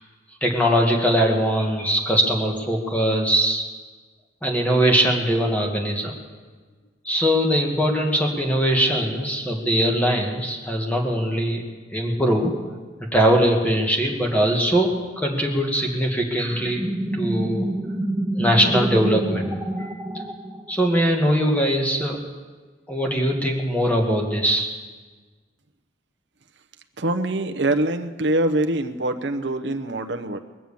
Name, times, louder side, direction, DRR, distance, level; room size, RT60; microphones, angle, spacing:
voice 1, 0.4-3.6 4.4-6.1 7.1-11.6 11.9-12.6 13.1-16.8 17.1-17.7 18.4-19.5 20.7-22.2 22.9-24.7, equal, 10° left, 0 dB, 1.9 m, -21 dB
sound 1, 16.6-21.0, right 1 dB, 10° right, 0.7 m, -27 dB
voice 2, 27.0-30.4, right 1 dB, 60° right, 6 dB, 0.9 m, -24 dB
22.0 x 7.7 x 7.1 m, 1.4 s
head